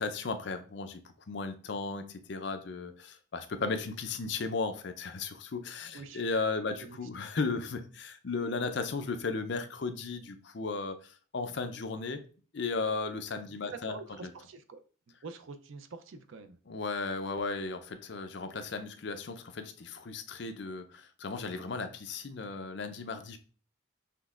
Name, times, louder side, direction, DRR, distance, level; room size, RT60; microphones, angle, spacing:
voice 1, 0.0-12.2 12.5-14.0 14.2-14.3 16.7-23.4, left 4 dB, 55° left, 0.5 m, -35 dB
voice 2, 13.7-14.8 15.2-16.6, right 3 dB, 75° right, 0.5 m, -45 dB
6.0 x 3.3 x 2.4 m
head